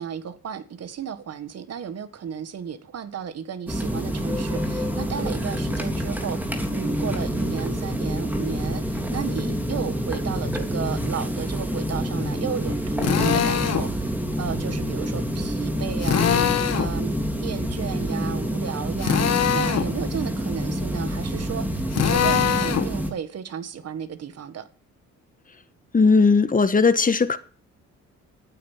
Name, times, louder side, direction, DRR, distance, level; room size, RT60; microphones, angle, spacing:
voice 1, 0.0-6.4 6.7-16.4 16.7-24.7, right 8 dB, 55° right, 1.8 m, -34 dB
sound 1, 3.7-23.1, equal, 5° right, 3.2 m, -27 dB
Drill, 13.0-13.9 16.0-16.9 19.0-19.9 21.9-22.9, left 8 dB, 55° left, 1.8 m, -22 dB
voice 2, 25.9-27.4, left 4 dB, 25° left, 1.5 m, -18 dB
12.5 x 9.4 x 7.4 m
cardioid pair, 90°, 30 cm